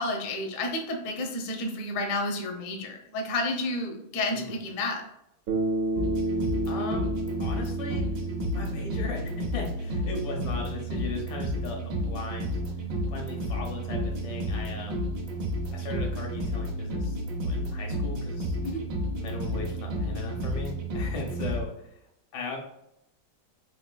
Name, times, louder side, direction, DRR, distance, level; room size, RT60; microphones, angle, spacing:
voice 1, 0.0-5.0 18.6-18.8, left 2 dB, 65° left, 2 dB, 0.8 m, -31 dB
voice 2, 4.3-4.6 6.7-7.1 7.4-8.0 8.5-12.6 13.1-15.1 15.7-18.6 19.2-22.0 22.3-22.6, left 3 dB, 85° left, 1 dB, 1.6 m, -37 dB
Bass guitar, 5.5-9.8, right 1 dB, 85° right, 1.5 m, -31 dB
sound 1, 6.0-21.6, equal, 70° right, 1.1 m, -31 dB
4.1 x 2.8 x 2.2 m, 0.81 s
omnidirectional pair, 2.1 m